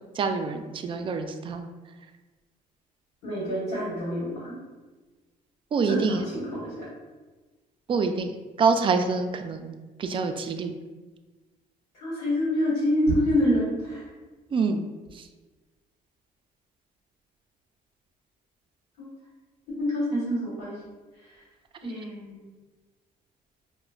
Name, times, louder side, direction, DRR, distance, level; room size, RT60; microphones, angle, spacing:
voice 1, 0.1-1.6 5.7-6.2 7.9-8.3 8.6-9.7 10.0-10.7 14.5-14.9 15.1-15.3, right 4 dB, 35° right, 6 dB, 0.4 m, -26 dB
voice 2, 3.2-4.5 5.9-6.9 11.9-14.1 19.0-19.1 19.8-20.8 21.2-21.4 21.8-22.4, equal, 75° left, -7 dB, 1.4 m, -27 dB
4.9 x 2.1 x 2.3 m, 1.2 s
cardioid pair, 95°, 16 cm